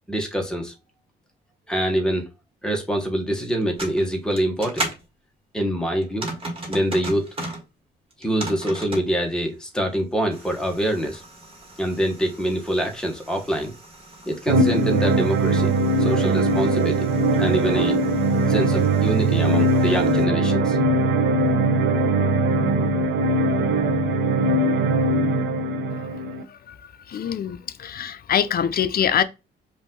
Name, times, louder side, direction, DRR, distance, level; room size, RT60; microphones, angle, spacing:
voice 1, 0.1-0.7 1.7-2.3 2.6-4.9 5.5-6.3 6.7-7.3 8.2-11.2 11.8-13.7 14.3-15.7 16.0-17.1 17.4-18.0 18.5-20.8, right 1 dB, 5° left, 1.3 m, -25 dB
sound 1, 3.5-5.0 6.0-7.6 8.1-9.1 10.3-20.2, right 1 dB, 30° right, 1.7 m, -37 dB
sound 2, 14.5-26.4, right 2 dB, 70° right, 0.8 m, -20 dB
voice 2, 25.9-29.2, left 9 dB, 50° left, 0.5 m, -25 dB
5.2 x 2.7 x 3.8 m
cardioid pair, 90°, 20 cm